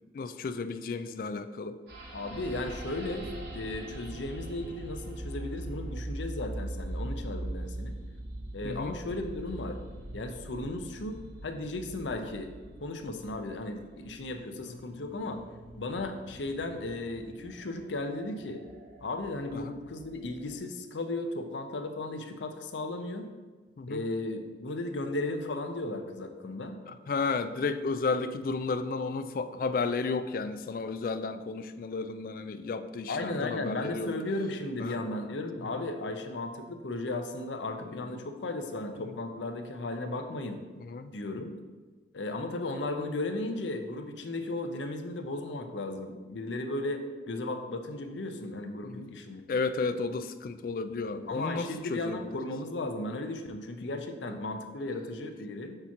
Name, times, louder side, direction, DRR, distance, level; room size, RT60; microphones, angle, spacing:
voice 1, 0.1-1.8 8.6-8.9 14.6-14.8 19.5-19.7 23.8-24.0 26.9-34.1 34.8-35.0 35.6-35.7 37.9-38.1 39.0-39.1 40.8-41.1 48.8-49.1 49.5-52.3 53.8-53.9, left 4 dB, 50° left, 11 dB, 0.3 m, -33 dB
sound 1, 1.9-20.6, right 1 dB, 65° right, 1.1 m, -42 dB
voice 2, 2.1-3.3 3.5-7.9 8.5-9.8 10.1-12.5 12.8-15.4 15.8-18.6 19.0-23.3 23.9-26.8 33.1-40.6 41.1-41.5 42.1-49.4 51.3-55.8, left 2 dB, 90° left, 7 dB, 0.6 m, -35 dB
6.6 x 3.0 x 5.8 m, 1.3 s
head